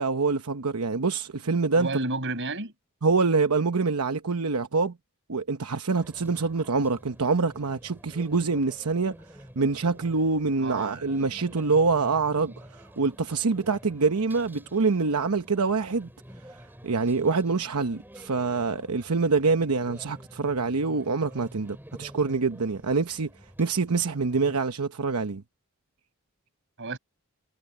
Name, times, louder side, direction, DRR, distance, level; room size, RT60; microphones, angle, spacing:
voice 1, 0.0-1.9 3.0-4.9 5.3-9.2 9.6-16.1 16.8-23.3 23.6-25.4, right 4 dB, 90° right, 0.9 m, -25 dB
voice 2, 1.8-2.7 10.6-11.0 26.8-27.0, right 2 dB, 55° right, 5.9 m, -31 dB
sound 1, 6.0-24.6, equal, 10° right, 6.7 m, -49 dB
head